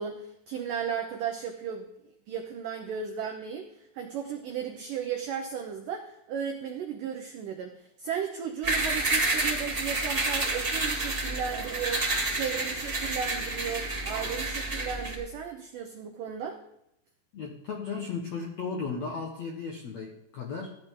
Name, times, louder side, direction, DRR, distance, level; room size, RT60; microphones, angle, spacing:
voice 1, 0.0-1.9 2.3-16.6, right 7 dB, 90° right, 2 dB, 1.8 m, -35 dB
sound 1, 8.6-15.1, right 2 dB, 20° right, 1.6 m, -29 dB
voice 2, 17.3-20.7, left 5 dB, 75° left, 0 dB, 1.6 m, -35 dB
15.0 x 10.5 x 3.8 m, 0.80 s
omnidirectional pair, 5.2 m